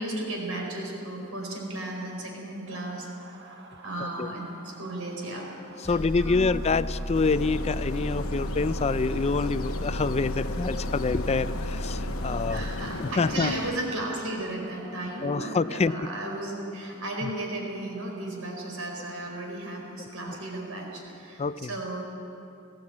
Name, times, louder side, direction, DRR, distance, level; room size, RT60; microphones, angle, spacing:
voice 1, 0.0-5.5 5.9-6.5 12.5-22.0, right 1 dB, 70° right, 1 dB, 4.4 m, -35 dB
sound 1, 2.7-19.4, right 3 dB, 50° right, 1.6 m, -52 dB
voice 2, 5.8-12.7 13.0-13.5 15.2-16.1 17.2-17.3 20.3-20.4 21.4-21.7, left 4 dB, 30° left, 15 dB, 0.4 m, -27 dB
Engine, 5.8-12.7, equal, 5° right, 4.0 m, -33 dB
sound 2, 7.1-13.7, left 2 dB, 65° left, 1.0 m, -37 dB
19.0 x 15.5 x 8.7 m, 2.8 s
head